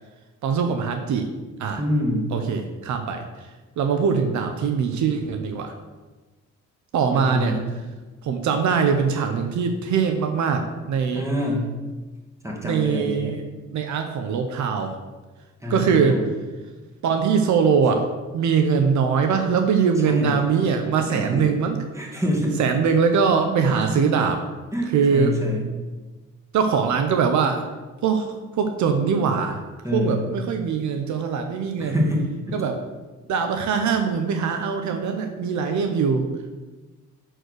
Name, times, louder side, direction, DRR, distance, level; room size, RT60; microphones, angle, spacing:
voice 1, 0.4-1.3 1.6-1.8 2.3-3.5 3.8-5.7 6.9-7.5 8.2-11.2 12.6-13.5 13.7-15.0 15.7-16.2 17.0-18.1 18.3-21.8 22.6-24.4 24.9-25.4 26.5-27.6 28.0-29.6 29.9-32.0 32.5-32.8 33.3-36.3, right 6 dB, 70° right, 6 dB, 0.8 m, -22 dB
voice 2, 1.8-2.3 7.1-7.6 11.1-11.7 12.4-13.3 15.6-16.3 20.0-20.4 21.1-21.5 21.9-22.6 23.9-24.0 24.7-25.6 29.8-30.2 31.8-32.6, left 1 dB, 10° right, -2 dB, 2.2 m, -26 dB
6.5 x 4.6 x 6.4 m, 1.2 s
cardioid pair, 90°, 30 cm